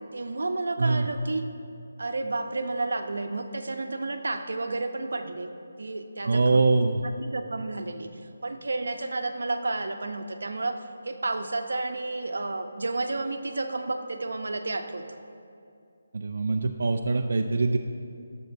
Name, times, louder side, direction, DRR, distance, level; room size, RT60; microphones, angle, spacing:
voice 1, 0.1-1.4 2.0-5.5 5.8-6.6 7.0-15.2, right 2 dB, 80° right, 6 dB, 0.8 m, -31 dB
voice 2, 6.2-7.0 16.1-17.8, right 3 dB, 60° right, 4 dB, 0.5 m, -23 dB
22.0 x 7.7 x 2.7 m, 2.5 s
hypercardioid pair, 170°, 0 cm